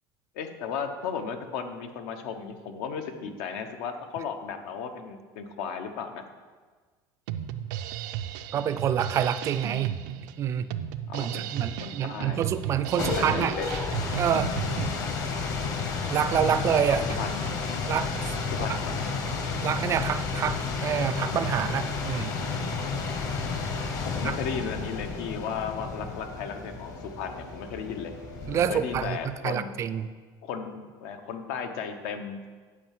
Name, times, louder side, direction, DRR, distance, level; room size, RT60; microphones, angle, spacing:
voice 1, 0.3-6.2 11.1-11.5 11.8-12.4 13.0-13.7 17.0-17.5 18.6-18.9 24.0-28.1 28.5-29.7 30.4-32.4, left 6 dB, 80° left, 7 dB, 0.9 m, -35 dB
Drum kit, 7.3-14.9, right 11 dB, 90° right, 0.5 m, -35 dB
voice 2, 8.5-9.9 10.4-10.7 11.1-13.5 14.2-14.5 16.1-17.2 17.9-18.3 19.6-22.4 24.2-24.3 28.4-30.1, right 9 dB, 30° right, 13 dB, 0.4 m, -27 dB
sound 1, 12.7-29.4, left 4 dB, 40° left, 1.0 m, -32 dB
8.6 x 4.8 x 7.5 m, 1.5 s
cardioid pair, 155°, 9 cm